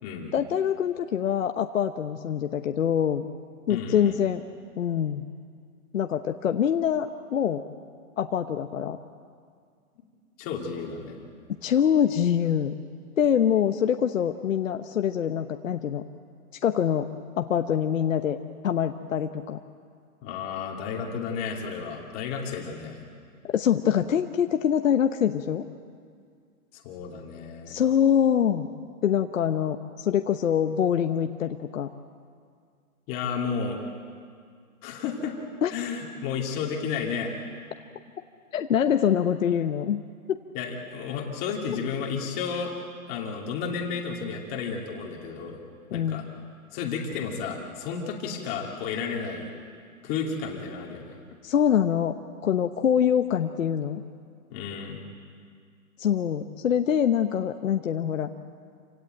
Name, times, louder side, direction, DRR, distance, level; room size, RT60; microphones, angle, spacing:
voice 1, 0.3-3.3 3.7-4.4 4.8-5.2 5.9-7.6 8.2-9.0 11.5-12.7 13.2-16.0 16.6-17.1 17.4-18.4 18.6-19.6 23.4-25.6 27.7-28.7 29.0-31.9 35.6-35.7 38.5-40.0 40.3-40.4 45.9-46.2 51.4-52.2 52.4-54.0 56.0-58.3, left 9 dB, 60° left, 6 dB, 1.1 m, -24 dB
voice 2, 3.7-4.2 10.4-11.2 20.2-23.0 26.7-27.7 33.1-33.8 34.8-35.4 35.7-37.3 40.5-42.7 43.1-45.6 45.9-46.2 46.7-49.5 50.0-51.1 54.5-55.0, left 6 dB, 20° left, 0 dB, 2.6 m, -32 dB
27.5 x 17.0 x 9.0 m, 2.2 s
hypercardioid pair, 165°, 43 cm